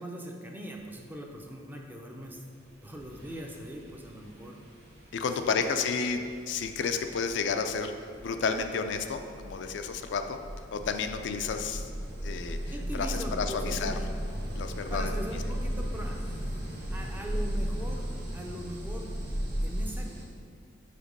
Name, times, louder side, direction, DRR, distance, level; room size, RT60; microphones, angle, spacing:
voice 1, 0.0-2.4 2.8-4.6 5.4-6.1 12.7-14.0 14.9-16.4 16.9-18.1 18.3-19.1 19.6-20.1, right 1 dB, 10° right, 1 dB, 0.5 m, -41 dB
sound 1, 2.5-2.6 3.0-20.3, equal, 50° right, 1.4 m, -36 dB
voice 2, 5.1-6.2 6.5-7.9 8.2-10.4 10.7-11.9 12.2-12.6 12.9-13.9 14.6-15.1, left 5 dB, 60° left, 7 dB, 0.3 m, -31 dB
5.0 x 4.3 x 5.2 m, 2.4 s
head